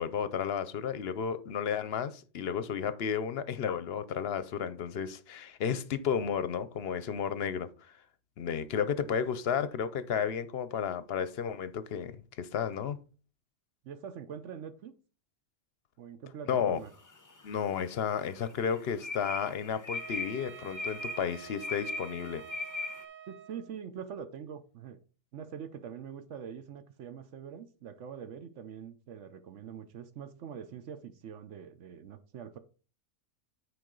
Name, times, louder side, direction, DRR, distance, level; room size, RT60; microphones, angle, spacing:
voice 1, 0.0-7.9 8.4-13.0 16.5-16.8 17.4-22.4, left 7 dB, 60° left, 0.8 m, -32 dB
voice 2, 13.8-14.9 16.0-16.9 23.3-25.0 25.3-32.6, right 7 dB, 75° right, 1.0 m, -44 dB
sound 1, 17.1-17.8 18.2-23.0, left 2 dB, 25° left, 0.5 m, -39 dB
Wind instrument woodwind instrument, 19.9-23.8, right 9 dB, 55° right, 0.5 m, -48 dB
9.3 x 4.8 x 3.8 m
omnidirectional pair, 1.3 m